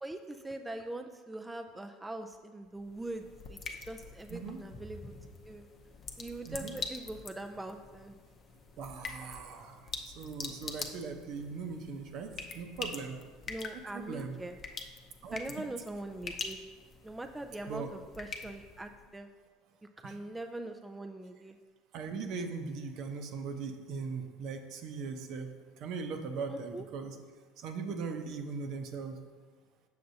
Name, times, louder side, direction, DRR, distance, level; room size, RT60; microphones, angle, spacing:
voice 1, 0.0-5.7 6.2-8.1 13.5-14.5 15.3-16.6 17.0-19.3 20.0-21.6 26.5-26.9, right 2 dB, 10° right, 5 dB, 0.3 m, -42 dB
sound 1, 2.7-19.1, left 4 dB, 35° left, 0.7 m, -45 dB
voice 2, 8.8-13.2 13.9-14.3 15.2-15.4 17.7-17.9 20.0-20.2 21.9-25.5 25.8-27.2 27.6-29.2, right 5 dB, 60° right, 5 dB, 0.7 m, -39 dB
6.6 x 6.5 x 2.7 m, 1.4 s
supercardioid pair, 100°, 0 cm